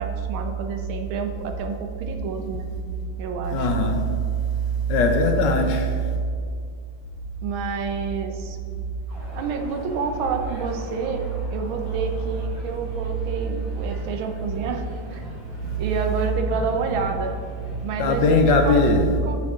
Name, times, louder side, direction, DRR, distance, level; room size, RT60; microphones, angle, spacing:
voice 1, 0.0-2.7 3.2-3.7 7.4-8.6 9.3-14.8 15.1-15.2 15.8-17.3 17.8-18.8 19.2-19.4, right 5 dB, 80° right, 5 dB, 1.5 m, -29 dB
voice 2, 3.5-4.1 4.9-6.0 18.0-19.0, left 2 dB, 70° left, 4 dB, 1.2 m, -19 dB
sound 1, 9.1-17.9, equal, 35° right, 1.5 m, -40 dB
7.2 x 6.2 x 3.6 m, 2.1 s
omnidirectional pair, 2.2 m